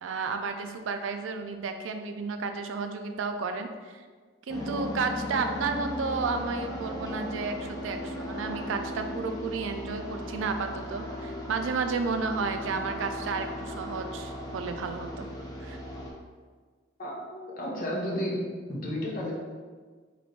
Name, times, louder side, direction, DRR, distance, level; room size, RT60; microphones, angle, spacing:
voice 1, 0.0-4.0 4.5-15.3 15.6-15.8, right 4 dB, 85° right, 7 dB, 0.4 m, -32 dB
sound 1, 4.5-16.1, equal, 20° left, 0.7 m, -37 dB
voice 2, 17.0-18.4 18.7-19.3, equal, 45° left, -4 dB, 0.9 m, -32 dB
3.3 x 3.1 x 4.0 m, 1.5 s
head